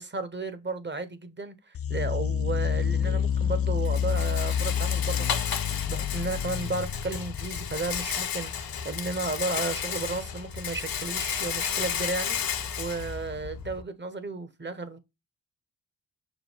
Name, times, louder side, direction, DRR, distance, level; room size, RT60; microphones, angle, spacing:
voice 1, 0.0-5.5 5.9-15.0, right 3 dB, 30° right, 1.0 m, -34 dB
sound 1, 1.7-8.3, left 8 dB, 40° left, 0.4 m, -28 dB
Rattle, 2.8-13.8, left 8 dB, 65° left, 0.9 m, -33 dB
6.1 x 2.2 x 3.4 m
supercardioid pair, 45°, 39 cm